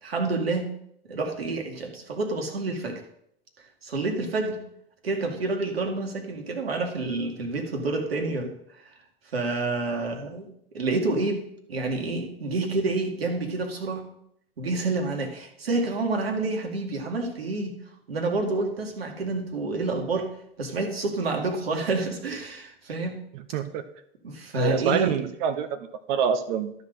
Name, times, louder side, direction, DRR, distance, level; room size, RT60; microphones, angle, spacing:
voice 1, 0.0-0.7 1.1-3.0 3.8-4.6 5.0-8.5 9.3-10.5 10.7-14.1 14.6-17.8 18.1-20.3 20.6-23.2 24.2-25.2, right 2 dB, 75° right, 4 dB, 2.1 m, -28 dB
voice 2, 23.3-23.8 24.6-25.8 26.1-26.7, right 8 dB, 50° right, 10 dB, 1.1 m, -26 dB
12.5 x 4.1 x 7.7 m, 0.72 s
figure-of-eight pair, 95°, 30 cm